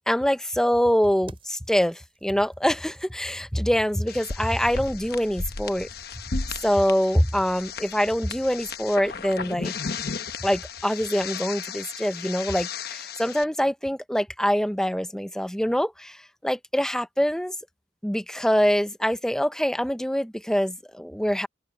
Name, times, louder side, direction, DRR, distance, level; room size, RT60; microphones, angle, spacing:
voice 1, 0.1-5.9 6.6-9.7 10.4-17.5 18.0-21.5, equal, 5° left, 0.7 m, -24 dB
sound 1, 1.0-6.8, right 1 dB, 30° right, 5.6 m, -54 dB
sound 2, 4.1-13.4, left 5 dB, 55° left, 1.0 m, -35 dB
open air
head